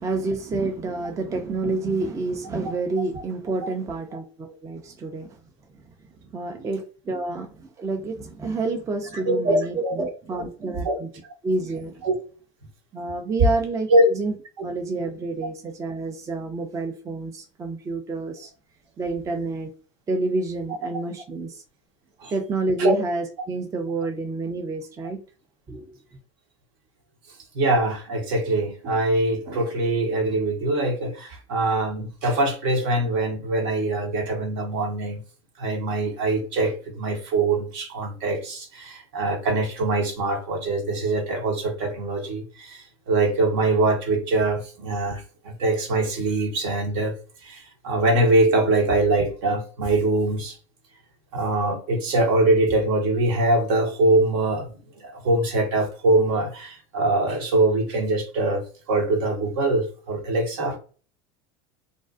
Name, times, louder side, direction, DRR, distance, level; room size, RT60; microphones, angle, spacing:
voice 1, 0.0-5.3 6.3-11.1 11.4-11.9 12.9-13.9 14.2-14.3 14.6-18.5 19.0-19.7 20.1-21.6 22.3-25.2 25.7-25.9, right 3 dB, 20° right, 0.4 m, -28 dB
voice 2, 9.1-10.1 10.8-11.0 12.0-12.2 13.4-13.5 13.9-14.0 22.2-22.3 22.8-22.9 27.5-35.2 35.6-47.1 47.4-50.6 51.3-60.8, right 2 dB, 65° right, 0.9 m, -23 dB
2.5 x 2.2 x 2.3 m
hypercardioid pair, 95°, 15 cm